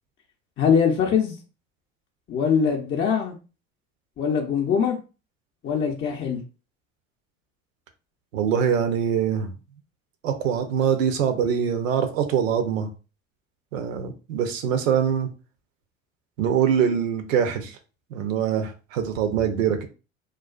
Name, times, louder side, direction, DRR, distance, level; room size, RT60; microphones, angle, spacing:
voice 1, 0.6-1.3 2.3-3.3 4.2-5.0 5.6-6.4, left 7 dB, 30° left, 0 dB, 0.5 m, -22 dB
voice 2, 8.3-9.5 10.2-12.9 13.7-15.3 16.4-17.7 18.1-19.9, right 8 dB, 80° right, 7 dB, 0.6 m, -23 dB
2.3 x 2.3 x 2.3 m, 0.32 s
hypercardioid pair, 75°, 38 cm